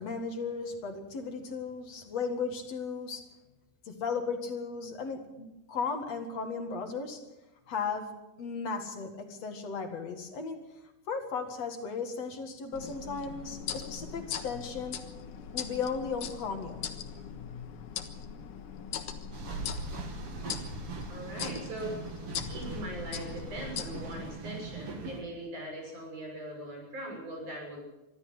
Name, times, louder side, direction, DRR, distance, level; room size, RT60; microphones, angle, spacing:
voice 1, 0.0-3.2 3.8-7.2 7.7-8.1 8.4-10.6 11.1-15.0 15.5-16.9, left 5 dB, 55° left, 6 dB, 3.0 m, -35 dB
sound 1, 12.7-24.4, left 8 dB, 80° left, 2.9 m, -40 dB
sound 2, 19.3-25.2, right 4 dB, 45° right, 3.0 m, -40 dB
voice 2, 21.1-21.9 22.5-27.8, right 1 dB, 70° right, 1 dB, 8.1 m, -40 dB
24.5 x 13.5 x 8.0 m, 1.0 s
omnidirectional pair, 3.6 m